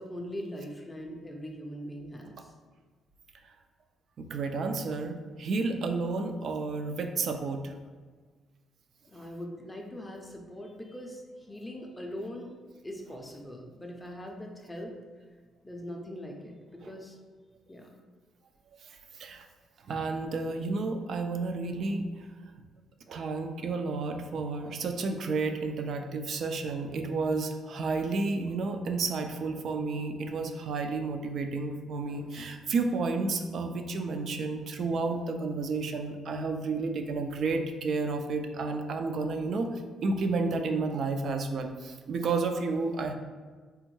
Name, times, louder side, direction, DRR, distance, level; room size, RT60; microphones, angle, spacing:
voice 1, 0.0-2.5 9.1-11.2 11.5-12.5 12.8-14.9 15.6-17.2 17.7-17.9, equal, 15° left, 1 dB, 0.4 m, -41 dB
voice 2, 4.2-7.7 16.8-16.9 18.8-19.5 19.8-22.1 23.1-43.1, right 3 dB, 60° right, 6 dB, 0.3 m, -31 dB
3.3 x 2.1 x 3.1 m, 1.5 s
cardioid pair, 90°, 0 cm